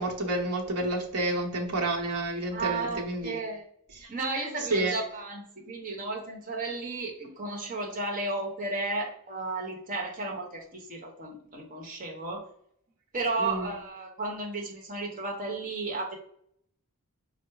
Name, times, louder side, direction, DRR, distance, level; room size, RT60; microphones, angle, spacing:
voice 1, 0.0-3.4 4.0-4.1 4.7-5.0 13.4-13.7, right 2 dB, 85° right, 1 dB, 0.9 m, -29 dB
voice 2, 2.5-3.6 4.1-12.4 13.1-16.2, right 3 dB, 40° right, 0 dB, 1.0 m, -33 dB
4.7 x 2.0 x 4.6 m, 0.67 s
head